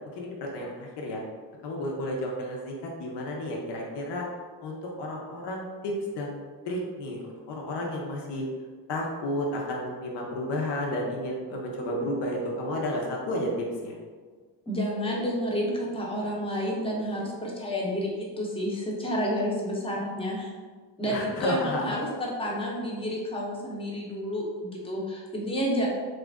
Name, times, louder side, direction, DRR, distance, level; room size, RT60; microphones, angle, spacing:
voice 1, 0.2-1.2 1.6-4.3 4.6-6.4 6.7-8.4 8.9-13.9 21.1-22.0, left 1 dB, 65° left, -1 dB, 0.7 m, -32 dB
voice 2, 14.7-20.5 21.0-25.9, equal, 10° left, -3 dB, 0.6 m, -30 dB
2.9 x 2.5 x 3.4 m, 1.5 s
cardioid pair, 120°, 45 cm